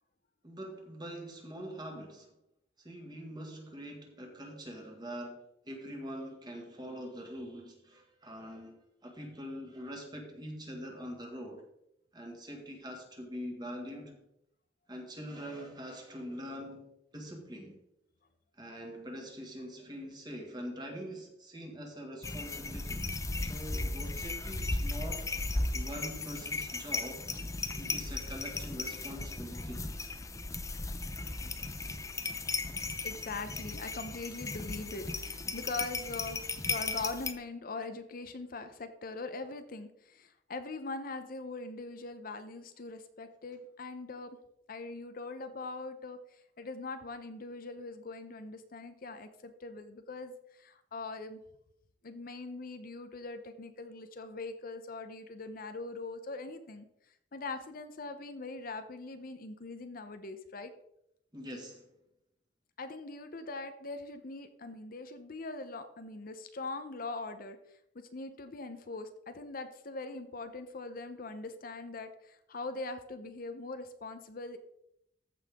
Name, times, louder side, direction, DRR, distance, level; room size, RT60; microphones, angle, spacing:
voice 1, 0.4-2.3 2.8-11.7 12.1-14.2 14.9-17.8 18.6-23.0 23.4-25.3 25.7-27.2 27.8-29.9 61.3-61.9, equal, 25° right, 1.9 m, -44 dB
sound 1, 22.2-37.3, left 3 dB, 20° left, 0.6 m, -36 dB
voice 2, 33.0-44.4 44.7-51.4 52.0-56.9 57.3-60.7 62.8-74.6, left 3 dB, 50° left, 0.7 m, -42 dB
14.5 x 5.6 x 3.6 m
head